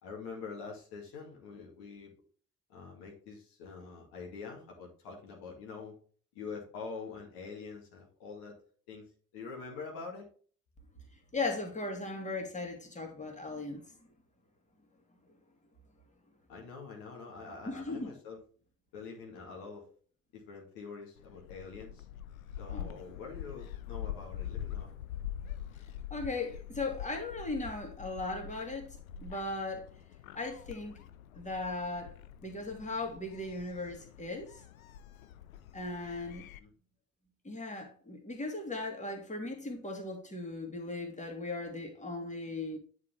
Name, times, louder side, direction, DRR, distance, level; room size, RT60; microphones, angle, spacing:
voice 1, 0.0-2.1 2.7-6.0 6.3-8.6 8.9-10.3 16.5-18.4 18.9-19.9 20.3-22.1 22.6-25.0 36.6-36.7, left 4 dB, 65° left, 2.3 m, -45 dB
voice 2, 11.3-13.8 17.7-18.1 22.7-22.9 26.1-28.9 29.2-29.8 30.3-31.0 31.3-32.1 32.4-34.5 35.7-36.4 37.4-42.8, left 2 dB, 15° left, 2.5 m, -37 dB
Gull seagull, 21.2-36.6, left 10 dB, 80° left, 0.6 m, -45 dB
9.5 x 4.7 x 3.4 m
figure-of-eight pair, 45°, 40 cm